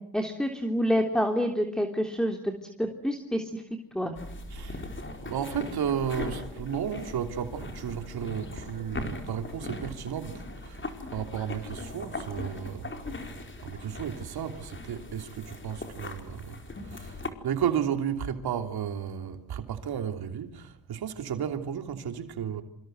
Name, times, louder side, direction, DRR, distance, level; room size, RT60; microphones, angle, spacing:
voice 1, 0.1-2.5 2.8-3.6 3.9-4.1, equal, ahead, 3.3 m, -27 dB
sound 1, 4.2-17.3, left 2 dB, 30° left, 4.7 m, -40 dB
voice 2, 4.5-4.9 5.2-13.0 13.6-22.6, right 8 dB, 80° right, 3.1 m, -33 dB
27.0 x 26.5 x 8.0 m
cardioid pair, 80°, 37 cm